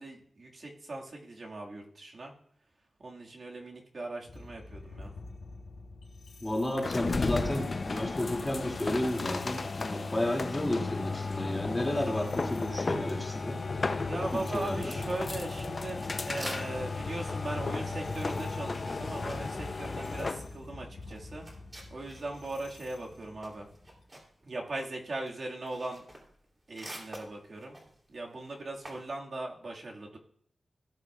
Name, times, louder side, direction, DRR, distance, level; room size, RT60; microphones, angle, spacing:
voice 1, 0.0-2.3 3.0-5.1 14.1-21.5 21.9-23.7 24.4-26.0 26.7-27.8 28.1-30.2, right 2 dB, 55° right, -1 dB, 1.8 m, -39 dB
sound 1, 4.2-8.5 9.0-9.6 10.0-10.4 10.9-12.7 13.3-24.0, left 3 dB, 90° left, 3.2 m, -45 dB
voice 2, 6.4-13.6 14.3-14.9, left 1 dB, 15° left, 1 dB, 2.4 m, -32 dB
sound 2, 6.8-20.5, left 3 dB, 45° left, 0.5 m, -34 dB
sound 3, 15.0-17.0 17.3-22.6 22.9-29.1, right 1 dB, 30° right, 3.0 m, -49 dB
17.5 x 9.1 x 2.4 m, 0.64 s
wide cardioid pair, 100°, 0 cm